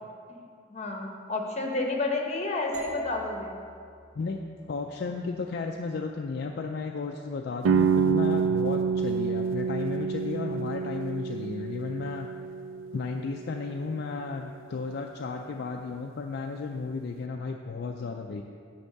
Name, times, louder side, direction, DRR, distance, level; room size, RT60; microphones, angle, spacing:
voice 1, 0.7-3.5, left 3 dB, 35° left, 1 dB, 1.0 m, -31 dB
sound 1, 2.7-6.9, right 1 dB, 45° right, 1.7 m, -43 dB
voice 2, 4.7-12.3 12.9-18.4, left 4 dB, 55° left, 2 dB, 0.4 m, -34 dB
sound 2, 7.7-13.4, right 6 dB, 75° right, 0.3 m, -27 dB
9.7 x 3.6 x 6.6 m, 2.3 s
head